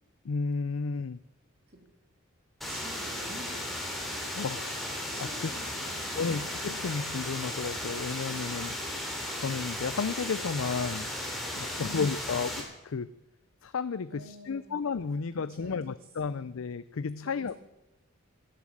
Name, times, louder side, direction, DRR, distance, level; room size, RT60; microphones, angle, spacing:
voice 1, 0.2-1.2 4.3-4.9 5.2-5.5 6.1-9.0 9.3-11.1 11.5-13.1 13.6-17.6, left 5 dB, 80° left, 14 dB, 0.5 m, -33 dB
sound 1, 2.6-12.6, left 1 dB, ahead, 3.5 m, -35 dB
voice 2, 2.7-4.3 5.1-6.4 11.8-12.0 14.1-14.8 15.4-16.5 17.2-17.6, right 1 dB, 45° right, 2 dB, 3.7 m, -50 dB
17.5 x 11.0 x 7.5 m, 0.92 s
head